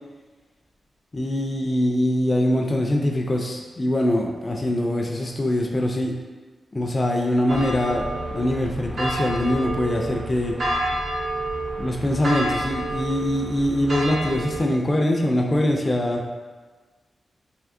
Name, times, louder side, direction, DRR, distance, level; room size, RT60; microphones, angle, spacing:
voice 1, 1.1-6.1 6.7-10.6 11.8-16.2, left 1 dB, 30° left, 1 dB, 0.4 m, -23 dB
sound 1, 7.5-14.6, right 1 dB, 65° right, 0.7 m, -29 dB
3.5 x 2.8 x 2.5 m, 1.3 s
cardioid pair, 70°, 0 cm